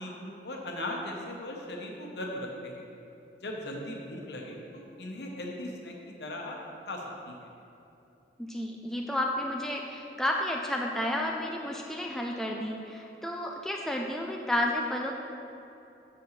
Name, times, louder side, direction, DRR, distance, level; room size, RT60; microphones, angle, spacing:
voice 1, 0.0-2.9 3.4-6.6 6.9-7.5, left 1 dB, 75° left, 0 dB, 0.9 m, -38 dB
voice 2, 8.4-15.2, left 1 dB, 5° left, 0 dB, 0.3 m, -31 dB
7.1 x 6.2 x 3.2 m, 2.8 s
head